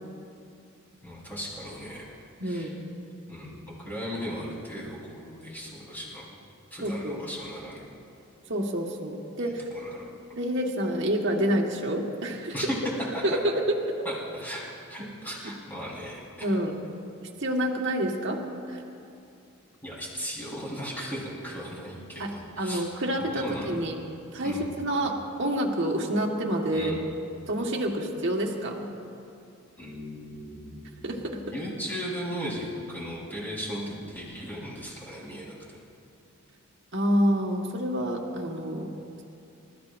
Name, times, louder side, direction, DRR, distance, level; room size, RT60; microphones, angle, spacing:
voice 1, 1.0-2.1 2.4-2.7 3.3-6.4 6.7-7.8 9.4-10.1 12.5-12.8 13.1-13.4 14.0-16.5 19.8-22.8 23.3-24.0 24.4-24.7 26.7-27.0 29.8-31.1 31.5-35.8, equal, 10° left, -6 dB, 4.1 m, -37 dB
voice 2, 2.4-2.8 6.8-7.2 8.5-9.7 10.3-12.5 13.2-13.5 16.4-16.8 17.4-18.4 18.7-18.8 22.2-23.9 24.3-26.9 27.5-28.9 31.0-31.4 36.9-38.9, right 1 dB, 55° right, 0 dB, 1.6 m, -28 dB
28.0 x 14.0 x 2.6 m, 2.6 s
head